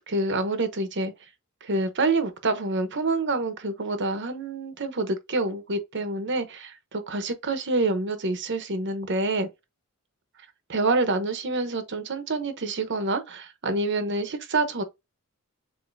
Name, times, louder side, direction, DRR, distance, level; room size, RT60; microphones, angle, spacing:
voice 1, 0.1-1.1 1.6-9.5 10.7-14.8, right 2 dB, 55° right, 0.9 m, -27 dB
7.2 x 2.8 x 2.6 m
head